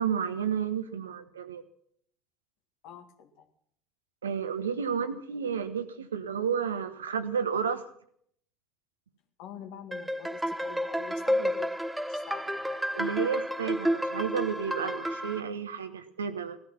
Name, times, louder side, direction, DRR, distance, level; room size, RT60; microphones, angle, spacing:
voice 1, 0.0-1.6 4.2-7.8 12.9-16.6, right 7 dB, 80° right, 10 dB, 1.2 m, -31 dB
voice 2, 2.8-3.5 9.4-12.8, left 8 dB, 60° left, 7 dB, 2.0 m, -46 dB
sound 1, 9.9-15.4, equal, 5° right, 1.1 m, -30 dB
17.5 x 14.0 x 6.0 m, 0.66 s
figure-of-eight pair, 65°, 0 cm